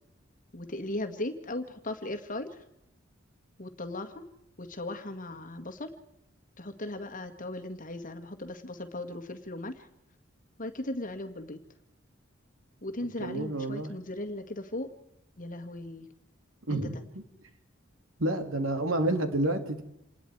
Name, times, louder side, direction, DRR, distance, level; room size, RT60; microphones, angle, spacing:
voice 1, 0.5-2.6 3.6-4.2 4.6-5.9 6.6-9.9 10.6-11.6 12.8-14.9 15.4-16.1, left 1 dB, 40° left, 7 dB, 1.9 m, -37 dB
voice 2, 13.0-13.9 16.7-17.2 18.2-19.8, right 1 dB, 90° right, 6 dB, 2.6 m, -29 dB
27.5 x 19.5 x 4.8 m, 0.84 s
head